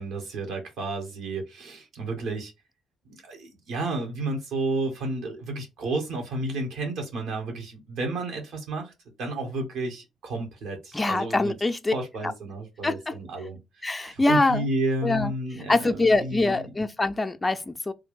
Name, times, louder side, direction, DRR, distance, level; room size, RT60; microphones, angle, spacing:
voice 1, 0.0-2.5 3.1-8.9 9.2-11.5 11.9-16.6, right 2 dB, 65° right, 1.4 m, -31 dB
voice 2, 10.9-11.9 12.2-12.3 12.8-13.2 13.8-14.7 15.0-15.3 15.7-17.9, left 2 dB, 20° left, 0.6 m, -24 dB
3.3 x 2.4 x 3.7 m
figure-of-eight pair, 40°, 0 cm